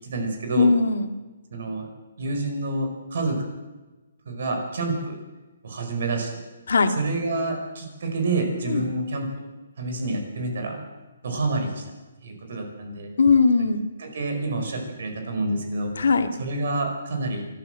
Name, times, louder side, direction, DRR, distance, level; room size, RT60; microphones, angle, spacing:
voice 1, 0.0-0.7 1.5-1.9 2.2-3.5 4.2-5.2 5.6-6.4 6.9-9.5 9.8-10.8 11.2-11.8 12.2-13.1 13.5-13.6 14.0-15.9 16.4-17.4, right 2 dB, 50° right, 4 dB, 4.9 m, -28 dB
voice 2, 0.6-1.1 6.7-6.9 8.7-8.9 13.2-13.8 16.0-16.3, left 4 dB, 75° left, 6 dB, 2.1 m, -19 dB
27.0 x 13.0 x 7.7 m, 1.2 s
hypercardioid pair, 175°, 0 cm